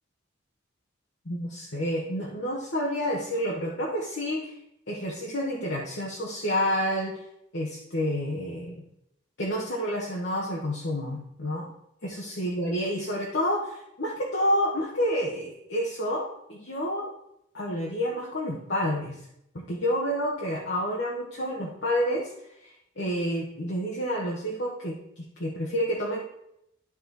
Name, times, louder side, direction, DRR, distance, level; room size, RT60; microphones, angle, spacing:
voice 1, 1.2-4.5 4.9-7.2 7.5-8.8 9.4-11.7 12.0-17.1 17.5-19.2 19.5-22.3 22.6-26.2, equal, 55° left, -4 dB, 1.3 m, -29 dB
12.0 x 4.4 x 4.0 m, 0.78 s
head